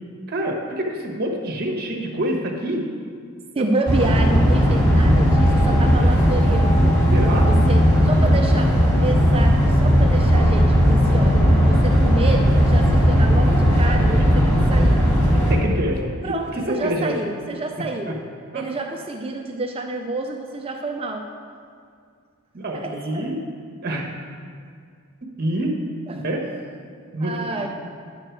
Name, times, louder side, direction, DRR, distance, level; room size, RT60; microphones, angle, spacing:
voice 1, 0.3-2.9 3.6-3.7 7.1-7.5 14.1-14.2 15.3-17.1 18.1-18.2 18.5-18.6 22.5-23.4 23.8-24.1 25.4-25.8 26.1-26.4 27.1-27.6, right 1 dB, 45° right, 1 dB, 1.2 m, -26 dB
voice 2, 3.5-7.0 7.3-8.7 9.0-15.1 16.2-18.2 18.5-21.3 22.7-23.3 26.1-26.3 27.2-27.7, right 2 dB, 25° right, 3 dB, 0.5 m, -28 dB
sound 1, 3.9-15.5, equal, 10° left, 1.8 m, -16 dB
10.5 x 6.5 x 4.6 m, 2.2 s
head